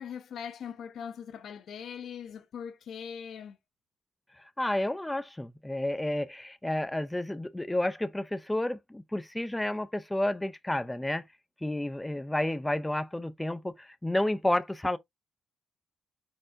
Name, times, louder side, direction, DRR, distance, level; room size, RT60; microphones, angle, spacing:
voice 1, 0.0-3.6, left 7 dB, 60° left, 0.7 m, -41 dB
voice 2, 4.4-11.2 11.6-15.0, left 1 dB, 5° left, 0.3 m, -31 dB
4.7 x 4.4 x 2.4 m
cardioid pair, 135°, 0 cm